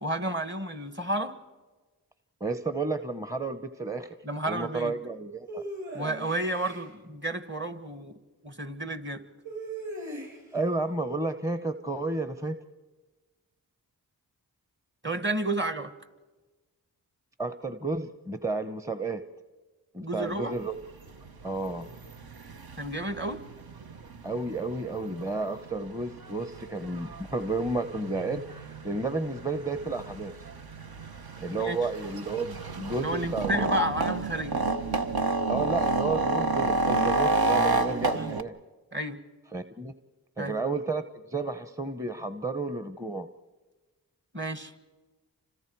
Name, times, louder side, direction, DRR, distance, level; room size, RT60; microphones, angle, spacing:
voice 1, 0.0-1.4 4.2-4.9 5.9-8.1 8.4-9.2 15.0-15.9 20.0-20.6 22.8-23.4 31.6-31.8 33.0-34.6 38.1-38.3 38.9-39.2 40.4-40.5 44.3-44.7, right 1 dB, 30° right, 10 dB, 1.7 m, -31 dB
voice 2, 2.4-4.2 4.4-5.6 10.5-12.6 17.4-19.2 19.9-20.8 21.4-21.9 24.2-30.3 31.4-33.8 35.5-38.5 39.5-39.9 40.4-43.3, right 3 dB, 10° right, 9 dB, 0.9 m, -32 dB
sound 1, 5.5-6.9 9.4-10.6, right 1 dB, 45° right, 8.0 m, -38 dB
sound 2, 20.3-20.4 20.7-38.4, right 3 dB, 65° right, 1.1 m, -31 dB
30.0 x 26.0 x 4.7 m, 1.3 s
cardioid pair, 40°, 40 cm